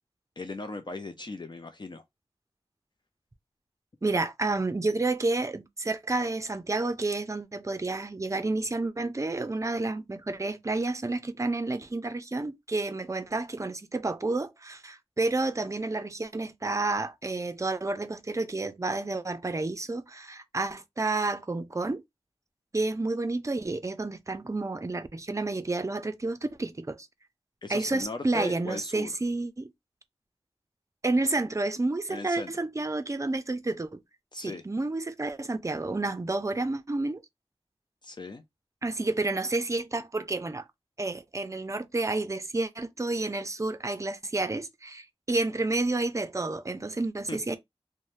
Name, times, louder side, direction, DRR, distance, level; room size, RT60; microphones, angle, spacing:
voice 1, 0.4-2.0 27.6-29.1 32.1-32.5 34.3-34.6 38.0-38.4 47.3-47.4, left 2 dB, 45° left, 0.4 m, -38 dB
voice 2, 4.0-22.0 22.7-27.1 27.7-29.7 31.0-34.0 34.4-37.2 38.8-40.7 41.0-47.6, right 2 dB, 30° right, 0.4 m, -30 dB
2.7 x 2.1 x 3.0 m
wide cardioid pair, 50°, 11 cm